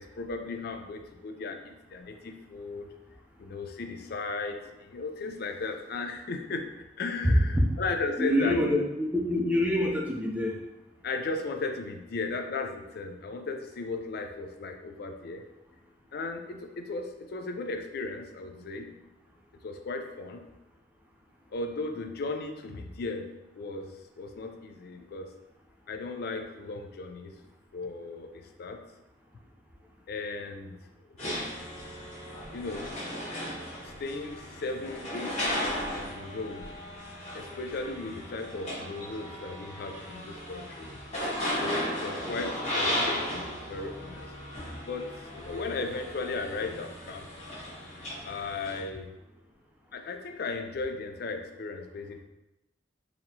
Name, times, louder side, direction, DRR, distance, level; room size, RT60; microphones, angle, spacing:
voice 1, 0.0-2.9 3.4-6.7 7.0-8.6 11.0-15.4 16.1-19.0 19.6-20.5 21.5-23.3 23.5-25.3 25.9-27.3 27.7-28.8 30.1-30.8 31.1-31.2 32.5-32.9 33.8-36.7 37.3-40.9 41.6-44.3 44.8-47.3 48.2-49.1 49.9-52.2, left 3 dB, 55° left, 5 dB, 0.4 m, -36 dB
voice 2, 7.2-7.6 8.2-10.5, equal, 10° right, 0 dB, 0.5 m, -25 dB
sound 1, 31.2-48.8, equal, 40° left, 1.3 m, -36 dB
4.1 x 2.8 x 2.7 m, 0.94 s
head